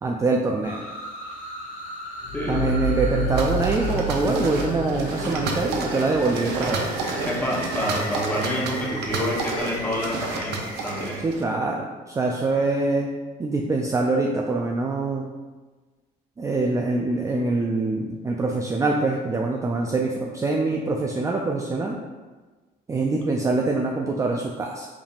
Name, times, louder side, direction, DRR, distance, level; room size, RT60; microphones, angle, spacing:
voice 1, 0.0-0.8 2.5-6.9 11.2-11.9 12.2-13.1 13.4-15.3 16.4-22.0 22.9-24.9, right 3 dB, 20° right, 0 dB, 0.3 m, -24 dB
sound 1, 0.6-11.2, left 1 dB, 55° left, 1.2 m, -38 dB
sound 2, 2.2-11.6, equal, 30° left, 1.2 m, -32 dB
voice 2, 2.3-2.8 6.8-11.3, equal, 10° left, -3 dB, 1.0 m, -28 dB
sound 3, 3.3-11.4, right 4 dB, 80° right, 0.6 m, -31 dB
5.1 x 3.4 x 2.4 m, 1.3 s
cardioid pair, 110°, 17 cm